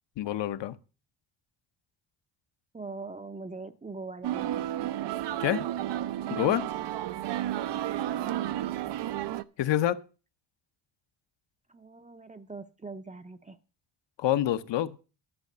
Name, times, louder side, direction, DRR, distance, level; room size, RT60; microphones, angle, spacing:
voice 1, 0.2-0.7 5.4-5.6 6.3-6.7 9.6-10.0 14.2-14.9, left 12 dB, 65° left, 12 dB, 0.9 m, -27 dB
voice 2, 2.7-4.7 8.2-8.6 11.7-13.6, right 3 dB, 15° right, 9 dB, 0.6 m, -42 dB
sound 1, 4.2-9.4, right 12 dB, 65° right, 0.6 m, -32 dB
11.5 x 5.9 x 6.6 m, 0.34 s
cardioid pair, 115°, 47 cm